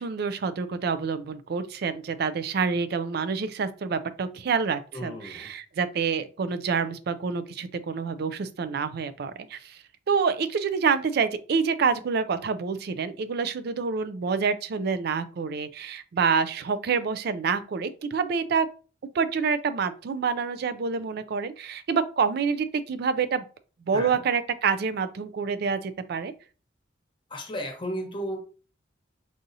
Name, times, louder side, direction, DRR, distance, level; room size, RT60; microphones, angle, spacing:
voice 1, 0.0-18.7 19.1-23.4 23.9-26.3, right 5 dB, 55° right, 0.4 m, -27 dB
voice 2, 4.9-5.5 23.9-24.1 27.3-28.4, equal, 25° left, 0.9 m, -34 dB
4.8 x 2.7 x 2.6 m
head